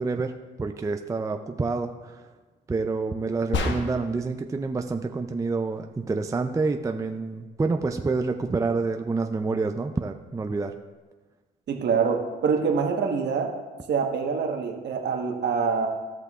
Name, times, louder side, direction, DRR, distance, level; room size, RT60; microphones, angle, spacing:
voice 1, 0.0-2.2 2.7-10.7, right 3 dB, 15° right, 6 dB, 0.4 m, -28 dB
sound 1, 3.5-4.3, left 3 dB, 65° left, 1.2 m, -28 dB
voice 2, 11.7-13.5 13.9-15.9, right 5 dB, 60° right, 2 dB, 1.3 m, -25 dB
16.5 x 5.9 x 2.4 m, 1.3 s
cardioid pair, 90°, 20 cm